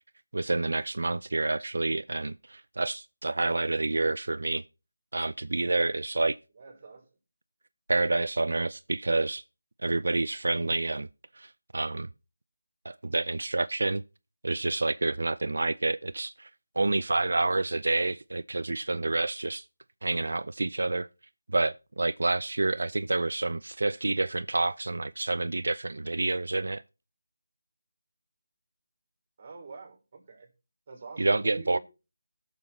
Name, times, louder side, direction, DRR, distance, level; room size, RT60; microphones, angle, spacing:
voice 1, 0.3-4.6 5.1-6.4 7.9-9.4 9.8-11.1 11.4-12.1 12.8-14.0 14.4-16.5 16.8-19.6 20.0-21.1 21.5-26.8 31.2-31.8, right 2 dB, 75° right, 0.4 m, -28 dB
voice 2, 6.6-7.1 29.4-30.5 30.9-31.8, right 4 dB, 30° right, 3.6 m, -45 dB
19.5 x 6.9 x 2.8 m
figure-of-eight pair, 170°, 0 cm